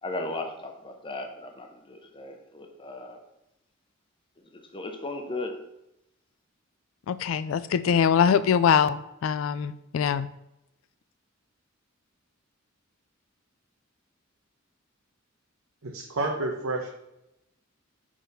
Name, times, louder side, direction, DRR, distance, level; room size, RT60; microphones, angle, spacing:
voice 1, 0.0-3.2 4.4-5.6, left 2 dB, 25° left, 4 dB, 0.7 m, -36 dB
voice 2, 7.1-10.3, left 7 dB, 70° left, 15 dB, 0.3 m, -23 dB
voice 3, 15.8-16.9, right 2 dB, 90° right, 1 dB, 0.8 m, -30 dB
6.2 x 4.0 x 5.3 m, 0.86 s
head